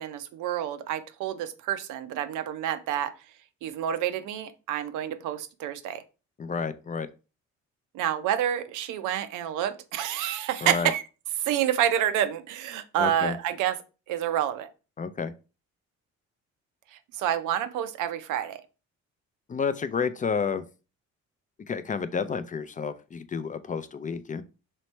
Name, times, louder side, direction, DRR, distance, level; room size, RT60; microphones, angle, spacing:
voice 1, 0.0-3.1 3.6-6.0 7.9-11.0 11.4-13.7 14.1-14.7 16.9-18.6, right 10 dB, 90° right, 10 dB, 0.6 m, -28 dB
voice 2, 6.4-7.1 10.6-10.9 13.0-13.4 15.0-15.3 19.5-20.6 21.7-24.4, left 5 dB, 25° left, 11 dB, 0.3 m, -30 dB
3.1 x 3.1 x 4.3 m, 0.33 s
cardioid pair, 90°, 30 cm